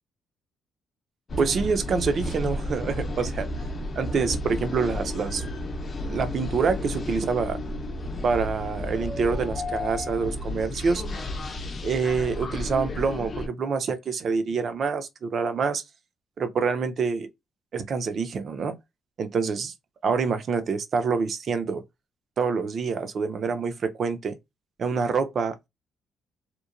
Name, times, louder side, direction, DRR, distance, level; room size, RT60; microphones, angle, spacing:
sound 1, 1.3-13.5, left 1 dB, 45° left, 0.6 m, -32 dB
voice 1, 1.4-3.4 4.0-5.4 6.1-7.6 8.2-11.0 11.8-15.8 16.4-17.3 17.7-18.7 19.2-19.7 20.0-21.8 22.4-24.4 24.8-25.7, right 5 dB, 55° right, 0.5 m, -26 dB
2.9 x 2.1 x 2.4 m
cardioid pair, 90°, 0 cm